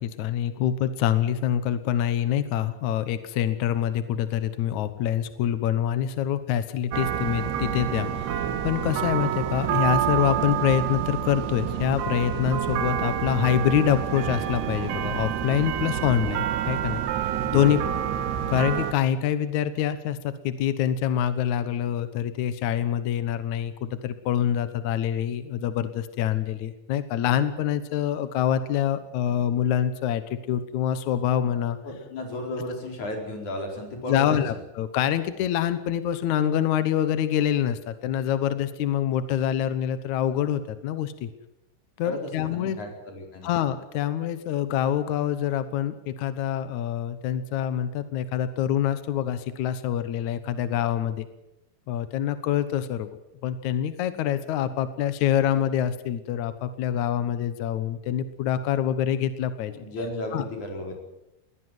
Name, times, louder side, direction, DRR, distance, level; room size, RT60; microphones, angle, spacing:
voice 1, 0.0-17.0 17.5-17.8 18.5-31.8 34.1-41.3 42.0-42.8 43.4-51.3 51.9-53.1 53.4-59.7 60.3-60.4, left 10 dB, 80° left, 12 dB, 1.7 m, -26 dB
sound 1, 6.9-18.9, right 9 dB, 75° right, 3.3 m, -28 dB
voice 2, 17.3-17.9 31.8-34.4 42.0-43.5 59.7-60.9, left 1 dB, 45° left, 2 dB, 5.8 m, -34 dB
21.5 x 18.0 x 8.0 m, 0.86 s
omnidirectional pair, 5.1 m